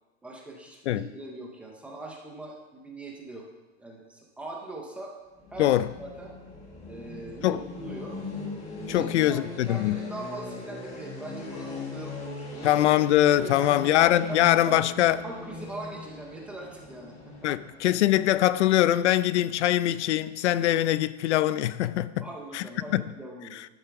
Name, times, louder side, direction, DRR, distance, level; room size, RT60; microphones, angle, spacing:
voice 1, 0.2-3.4 3.8-5.2 5.5-6.3 6.8-8.2 8.9-13.0 13.4-14.0 14.3-14.4 14.7-14.9 15.2-17.5 22.2-23.6, right 2 dB, 5° right, 0.5 m, -41 dB
sound 1, 5.4-19.3, left 3 dB, 20° left, 1.6 m, -40 dB
voice 2, 5.6-5.9 7.4-7.6 8.9-10.1 12.6-15.2 17.4-22.2 22.5-22.6 22.9-23.0 23.5-23.7, left 13 dB, 70° left, 0.6 m, -23 dB
11.0 x 8.5 x 5.8 m
supercardioid pair, 180°, 35 cm